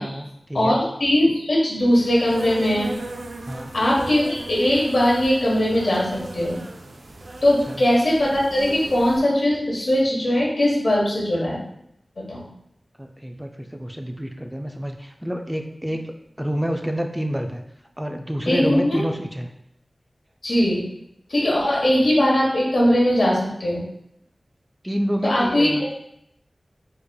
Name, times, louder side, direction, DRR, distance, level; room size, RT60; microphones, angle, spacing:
voice 1, 0.0-0.8 3.4-3.7 7.7-7.8 13.0-17.6 18.0-19.5 24.8-25.9, equal, 10° right, 4 dB, 0.4 m, -28 dB
voice 2, 0.5-2.9 3.7-6.6 7.4-11.6 12.2-12.5 18.4-19.0 20.4-20.8 21.3-23.8 25.2-25.7, left 1 dB, 75° left, -3 dB, 1.2 m, -20 dB
Insect, 2.0-9.2, right 2 dB, 90° right, 0.4 m, -37 dB
4.8 x 3.0 x 2.3 m, 0.76 s
wide cardioid pair, 45°, 0 cm